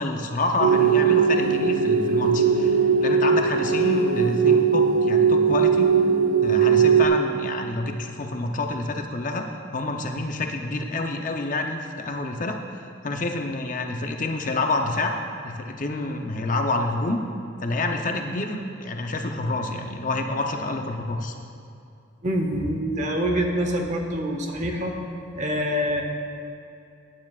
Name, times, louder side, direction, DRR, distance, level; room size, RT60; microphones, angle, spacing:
voice 1, 0.0-5.9 6.4-9.4 9.7-15.1 15.4-17.2 17.6-21.3, left 2 dB, 40° left, 3 dB, 0.6 m, -28 dB
sound 1, 0.6-7.1, right 6 dB, 85° right, 0.6 m, -19 dB
voice 2, 22.2-24.9 25.3-26.0, equal, 35° right, 3 dB, 1.0 m, -25 dB
17.0 x 9.5 x 2.4 m, 2.6 s
head